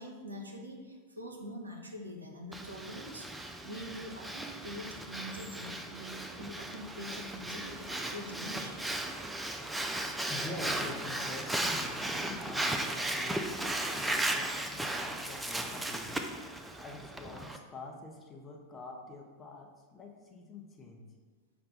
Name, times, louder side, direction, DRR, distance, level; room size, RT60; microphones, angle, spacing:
voice 1, 0.0-9.0, equal, 80° right, 1 dB, 0.6 m, -44 dB
Breathing, 2.5-17.6, right 1 dB, 5° right, 0.3 m, -36 dB
voice 2, 10.1-16.2 16.8-21.1, left 2 dB, 20° left, 0 dB, 0.7 m, -46 dB
5.2 x 2.2 x 4.1 m, 1.4 s
figure-of-eight pair, 90°, 0 cm